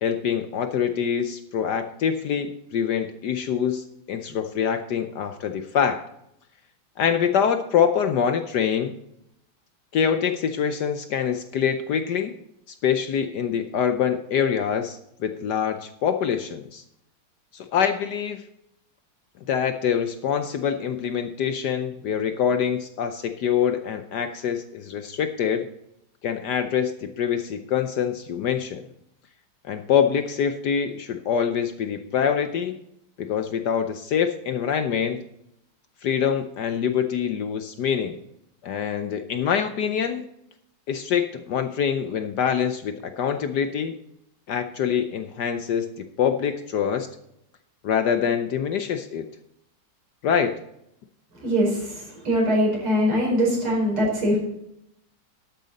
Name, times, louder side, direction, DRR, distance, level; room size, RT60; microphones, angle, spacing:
voice 1, 0.0-6.0 7.0-9.0 9.9-12.3 12.8-16.8 17.5-18.4 19.5-25.7 26.2-28.8 29.7-32.7 33.2-35.2 36.0-38.2 38.6-40.3 40.9-43.9 44.5-47.1 47.8-49.3 50.2-50.6, left 7 dB, 65° left, 8 dB, 1.1 m, -25 dB
voice 2, 51.4-54.4, equal, 80° right, -2 dB, 5.6 m, -22 dB
12.0 x 8.9 x 4.1 m, 0.78 s
omnidirectional pair, 2.3 m